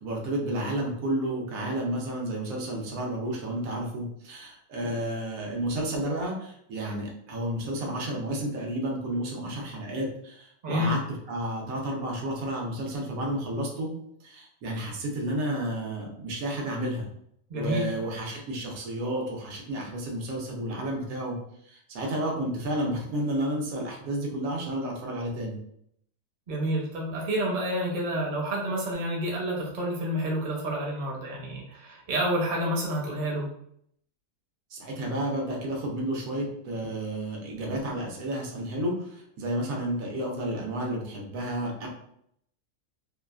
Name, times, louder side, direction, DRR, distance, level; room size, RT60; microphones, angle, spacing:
voice 1, 0.0-11.0 11.3-13.9 14.2-17.1 17.5-21.4 21.7-25.6 34.7-41.9, right 1 dB, 85° right, -1 dB, 1.1 m, -31 dB
voice 2, 17.5-17.9 26.5-33.5, equal, 45° right, -3 dB, 0.7 m, -29 dB
2.8 x 2.3 x 2.3 m, 0.70 s
omnidirectional pair, 1.4 m